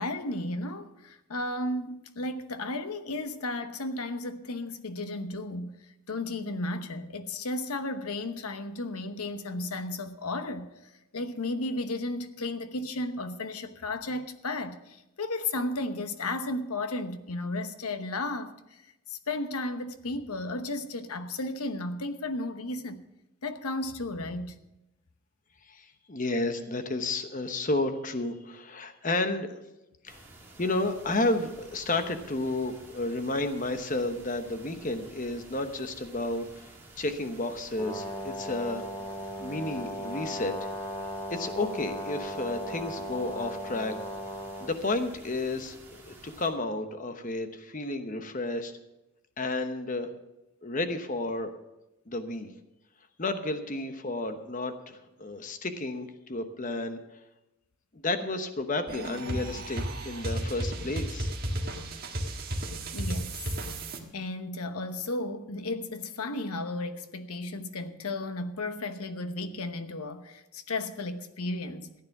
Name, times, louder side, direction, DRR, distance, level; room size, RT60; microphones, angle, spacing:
voice 1, 0.0-5.8 6.1-10.7 11.1-18.8 19.1-23.1 23.4-24.6 62.9-63.4 64.1-71.9, left 2 dB, 90° left, 1.0 m, -34 dB
voice 2, 25.7-29.5 30.0-30.2 30.6-36.7 37.0-38.8 39.4-40.7 41.3-43.9 44.6-48.7 49.4-50.1 50.6-51.5 52.1-52.5 53.2-57.0 57.9-61.3, left 2 dB, 35° left, 1.0 m, -32 dB
sound 1, 30.1-46.5, right 2 dB, 10° right, 2.4 m, -52 dB
Brass instrument, 37.8-44.8, equal, 15° left, 1.2 m, -37 dB
sound 2, 58.9-64.0, right 1 dB, 40° right, 1.7 m, -33 dB
14.5 x 9.6 x 5.9 m
head